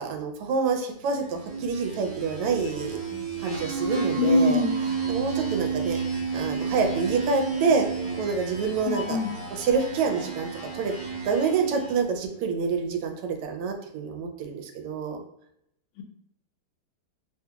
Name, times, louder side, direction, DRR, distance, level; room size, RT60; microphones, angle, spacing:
voice 1, 0.0-3.0 3.4-4.6 5.1-6.0 6.3-7.9 8.2-9.2 9.5-10.9 11.2-15.2, right 5 dB, 85° right, 5 dB, 1.5 m, -27 dB
sound 1, 1.3-12.1, right 5 dB, 60° right, 0.4 m, -32 dB
voice 2, 4.2-4.7 8.9-9.3, left 3 dB, 80° left, 3 dB, 1.5 m, -23 dB
3.7 x 2.3 x 2.7 m, 0.75 s
omnidirectional pair, 2.4 m